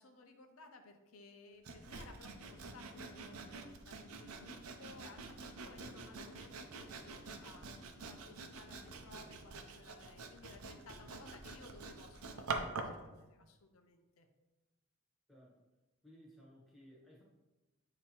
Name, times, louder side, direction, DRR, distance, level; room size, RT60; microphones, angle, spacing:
voice 1, 0.0-7.7 8.1-14.3, left 3 dB, 80° left, 5 dB, 0.6 m, -58 dB
Sawing, 1.6-13.0, right 3 dB, 90° right, 0.6 m, -46 dB
voice 2, 15.3-15.6 16.0-17.2, equal, ahead, -6 dB, 1.4 m, -59 dB
8.7 x 2.9 x 4.3 m, 1.1 s
head